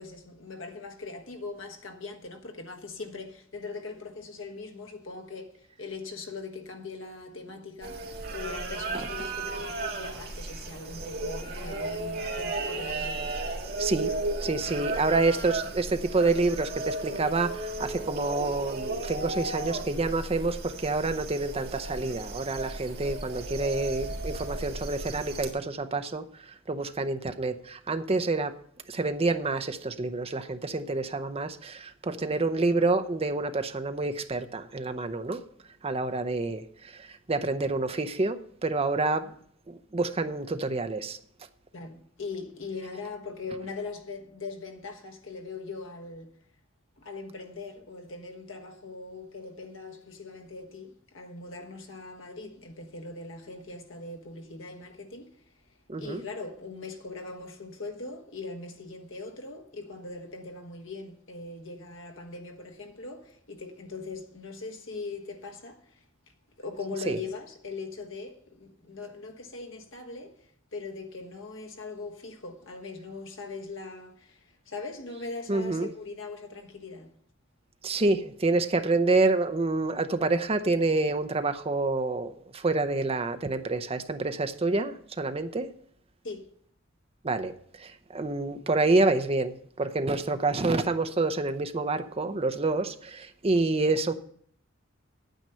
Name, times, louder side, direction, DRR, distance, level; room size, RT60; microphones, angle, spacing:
voice 1, 0.0-13.4 41.7-46.3 47.0-55.4 56.0-66.0 66.6-77.1 86.2-86.5, left 3 dB, 75° left, 1.3 m, -40 dB
sound 1, 7.8-25.5, right 2 dB, 50° right, 1.7 m, -35 dB
voice 2, 13.8-14.1 14.4-28.5 28.9-35.4 35.8-39.3 39.7-41.2 55.9-56.2 67.1-67.2 75.5-75.9 77.8-85.7 87.2-94.1, right 3 dB, 30° right, 0.7 m, -28 dB
9.2 x 8.9 x 5.6 m
head